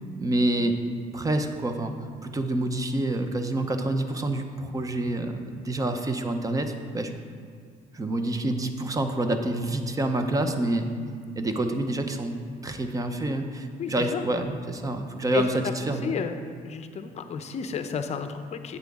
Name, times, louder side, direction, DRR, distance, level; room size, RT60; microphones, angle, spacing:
voice 1, 0.2-0.8 1.1-1.9 2.2-7.1 7.9-10.9 11.4-12.4 12.6-16.2, right 1 dB, 20° right, 7 dB, 0.6 m, -27 dB
voice 2, 13.8-14.2 15.3-15.4 15.8-16.4 16.6-18.8, left 7 dB, 40° left, 8 dB, 0.6 m, -32 dB
8.6 x 7.5 x 3.6 m, 2.1 s
cardioid pair, 110°, 17 cm